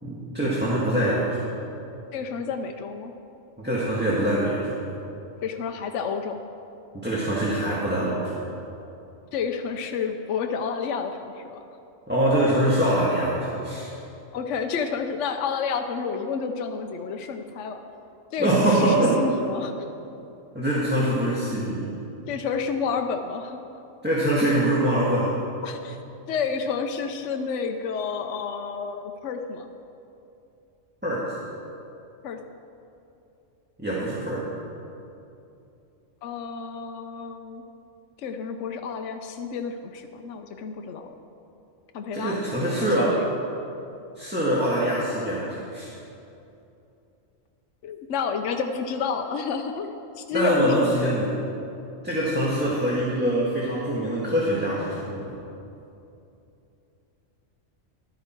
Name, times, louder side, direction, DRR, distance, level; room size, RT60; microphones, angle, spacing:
voice 1, 0.0-1.4 3.6-4.8 6.9-8.3 12.1-13.9 18.4-19.2 20.5-21.9 24.0-25.3 31.0-31.4 33.8-34.5 42.1-43.1 44.2-45.9 50.3-51.3 52.0-55.4, right 1 dB, 10° right, -7 dB, 1.7 m, -24 dB
voice 2, 2.1-3.1 5.4-6.4 9.3-11.6 14.3-17.8 18.3-19.9 22.3-23.6 25.6-26.0 26.3-29.7 32.2-32.4 36.2-37.6 38.2-41.1 41.9-42.4 42.8-43.3 47.8-51.1, left 6 dB, 70° left, 5 dB, 1.0 m, -30 dB
13.5 x 11.5 x 4.5 m, 2.8 s
omnidirectional pair, 1.3 m